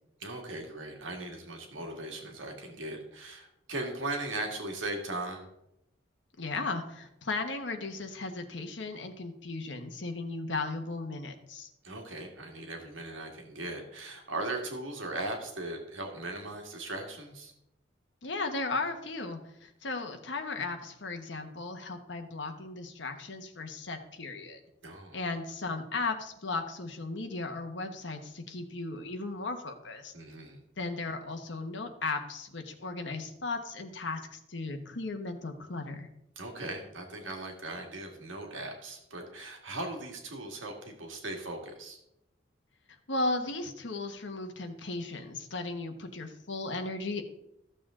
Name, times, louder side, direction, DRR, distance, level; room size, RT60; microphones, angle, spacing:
voice 1, 0.2-5.5 11.8-17.5 24.8-25.2 30.1-30.6 36.4-42.0, right 2 dB, 85° right, 2 dB, 2.0 m, -38 dB
voice 2, 6.4-11.7 18.2-24.6 25.1-30.1 30.8-36.1 43.1-47.2, left 3 dB, 65° left, 5 dB, 1.2 m, -36 dB
14.0 x 6.9 x 3.8 m, 0.81 s
head